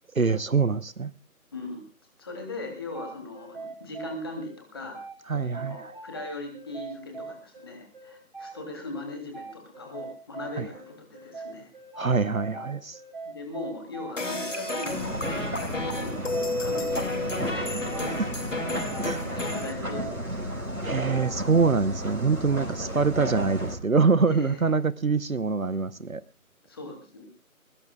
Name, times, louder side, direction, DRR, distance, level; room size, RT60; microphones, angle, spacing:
voice 1, 0.2-1.1 5.3-5.9 10.6-10.7 12.0-13.0 18.2-18.3 19.0-19.4 20.8-26.2, right 4 dB, 65° right, 1.0 m, -25 dB
voice 2, 1.5-1.8 2.2-5.0 5.5-11.7 13.2-18.7 19.1-20.6 22.5-22.9 24.3-24.6 26.7-27.2, left 2 dB, 15° left, 2.8 m, -40 dB
sound 1, 2.9-21.8, right 4 dB, 35° right, 3.5 m, -42 dB
sound 2, 14.2-19.7, left 2 dB, 55° left, 2.6 m, -32 dB
sound 3, 14.9-23.8, equal, 85° right, 5.5 m, -33 dB
21.0 x 21.0 x 2.3 m
figure-of-eight pair, 165°, 43 cm